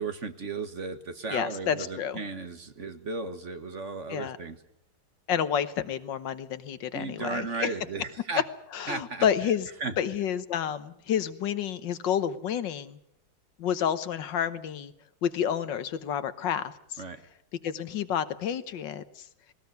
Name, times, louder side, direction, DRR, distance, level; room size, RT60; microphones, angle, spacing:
voice 1, 0.0-4.6 6.9-8.4 8.9-9.2 9.8-9.9 17.0-17.2, right 4 dB, 45° right, 9 dB, 1.5 m, -35 dB
voice 2, 1.3-2.2 4.1-4.4 5.3-7.7 8.7-9.7 10.0-13.0 13.6-14.9 15.2-17.0 17.6-19.3, left 8 dB, 75° left, 13 dB, 1.8 m, -30 dB
19.0 x 19.0 x 9.4 m, 0.76 s
omnidirectional pair, 2.0 m